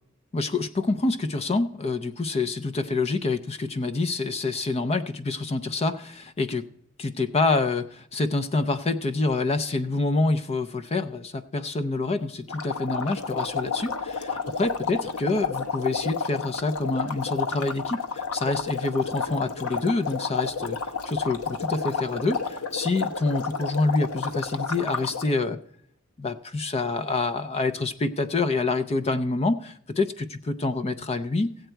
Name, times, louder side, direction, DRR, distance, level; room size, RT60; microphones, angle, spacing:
voice 1, 0.3-6.7 7.0-20.8 21.0-25.6 26.2-31.5, left 3 dB, 30° left, 11 dB, 0.5 m, -27 dB
sound 1, 12.5-25.3, left 5 dB, 80° left, 1.0 m, -31 dB
16.5 x 7.9 x 4.5 m, 0.68 s
head